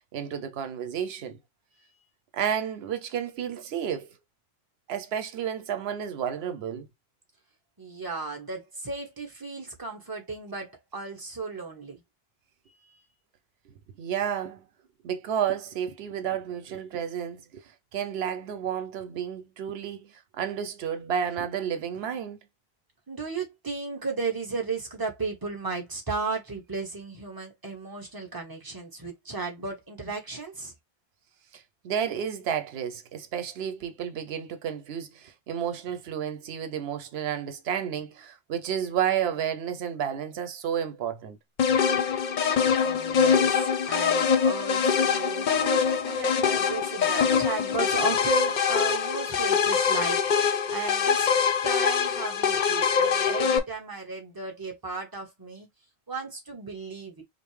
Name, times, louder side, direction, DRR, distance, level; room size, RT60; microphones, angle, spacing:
voice 1, 0.0-1.4 2.3-4.1 4.9-6.9 13.7-14.6 15.0-22.4 31.5-41.4, right 8 dB, 85° right, 0.8 m, -31 dB
voice 2, 7.8-12.0 12.7-13.0 23.1-30.7 42.8-45.5 46.0-55.7 56.1-57.2, right 4 dB, 20° right, 1.1 m, -35 dB
sound 1, 41.6-53.6, left 6 dB, 55° left, 0.6 m, -24 dB
5.1 x 2.0 x 3.1 m
omnidirectional pair, 1.0 m